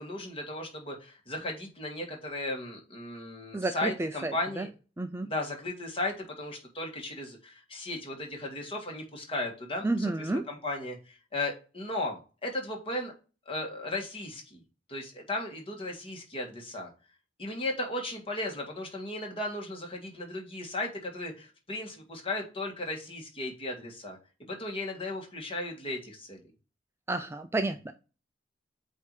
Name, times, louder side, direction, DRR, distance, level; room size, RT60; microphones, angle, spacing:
voice 1, 0.0-4.7 5.2-13.1 13.5-14.6 14.9-16.9 17.4-26.4, left 2 dB, 30° left, 1 dB, 1.8 m, -36 dB
voice 2, 3.5-4.7 5.0-5.3 9.8-10.4 27.1-27.9, right 2 dB, 15° right, 8 dB, 0.4 m, -31 dB
8.2 x 2.8 x 4.7 m, 0.33 s
head